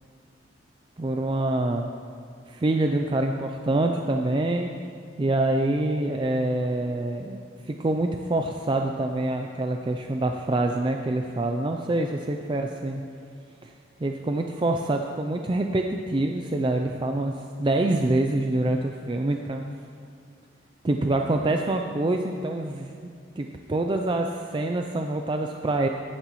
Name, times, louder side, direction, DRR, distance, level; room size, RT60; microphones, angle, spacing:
voice 1, 1.0-1.9 2.5-4.7 5.2-7.4 7.7-13.0 13.6-13.7 14.0-17.3 17.6-19.6 20.8-23.1 23.4-25.9, right 2 dB, 25° right, 4 dB, 0.4 m, -26 dB
14.5 x 11.0 x 3.1 m, 2.3 s
head